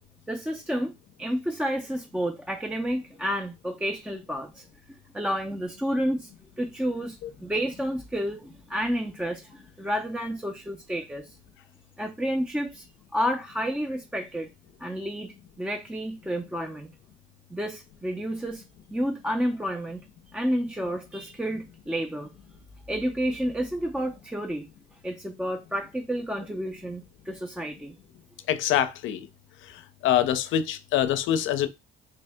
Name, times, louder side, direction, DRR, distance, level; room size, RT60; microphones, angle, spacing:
voice 1, 0.3-0.9 1.2-6.3 6.6-11.4 12.0-12.9 13.1-14.5 14.8-16.9 17.5-18.6 18.9-20.0 20.3-22.3 22.9-24.7 25.0-28.0, equal, 5° right, 0.4 m, -30 dB
voice 2, 28.5-29.3 29.6-31.7, left 11 dB, 80° left, 0.5 m, -25 dB
3.0 x 2.7 x 3.3 m
cardioid pair, 90°, 20 cm